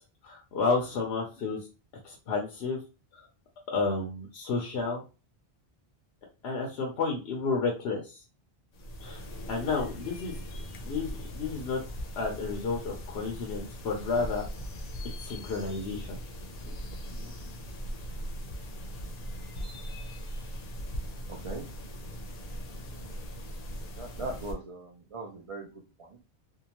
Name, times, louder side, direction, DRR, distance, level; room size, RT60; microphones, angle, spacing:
voice 1, 0.2-1.6 2.0-2.8 3.1-3.3 3.7-5.0 6.4-8.2 9.0-9.2 9.5-10.4 10.8-11.8 12.2-14.5 15.2-16.2 16.7-16.8 17.1-17.3, left 4 dB, 90° left, 0 dB, 0.9 m, -31 dB
sound 1, 8.7-24.5, equal, 60° left, 0.7 m, -40 dB
voice 2, 24.0-25.7 26.0-26.1, right 2 dB, 45° right, -1 dB, 0.4 m, -39 dB
2.7 x 2.2 x 2.9 m, 0.32 s
omnidirectional pair, 1.1 m